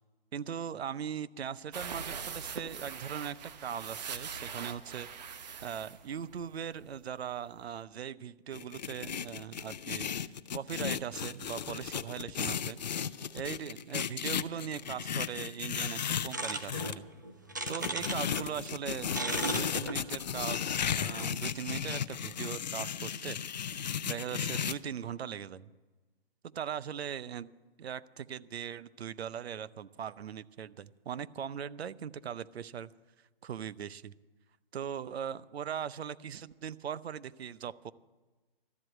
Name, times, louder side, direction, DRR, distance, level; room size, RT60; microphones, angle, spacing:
voice 1, 0.3-10.1 10.5-12.8 13.3-17.0 17.7-23.4 24.1-25.7 26.5-27.5 27.8-32.9 33.4-34.1 34.7-37.9, right 8 dB, 85° right, 17 dB, 0.7 m, -40 dB
sound 1, 1.7-7.0 7.3-7.4 7.7-7.8, right 6 dB, 45° right, 1.0 m, -42 dB
sound 2, 8.5-17.0 17.7-24.7, left 8 dB, 45° left, 0.4 m, -35 dB
sound 3, 16.3-18.5 18.7-21.3, right 2 dB, 20° right, 0.4 m, -37 dB
13.0 x 7.8 x 9.3 m, 1.2 s
hypercardioid pair, 170°, 31 cm